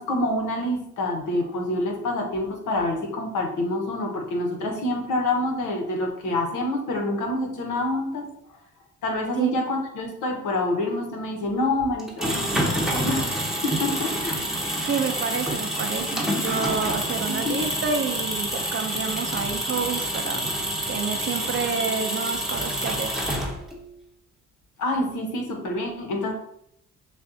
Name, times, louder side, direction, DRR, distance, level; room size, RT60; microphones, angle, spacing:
voice 1, 0.0-8.3 9.0-14.4 17.3-17.6 24.8-26.4, left 1 dB, 80° left, 2 dB, 1.1 m, -27 dB
sound 1, 12.0-23.8, equal, ahead, 0.9 m, -27 dB
voice 2, 14.8-20.5 20.9-23.1, right 5 dB, 40° right, 6 dB, 0.5 m, -29 dB
6.4 x 2.4 x 2.7 m, 0.73 s
cardioid pair, 90°, 30 cm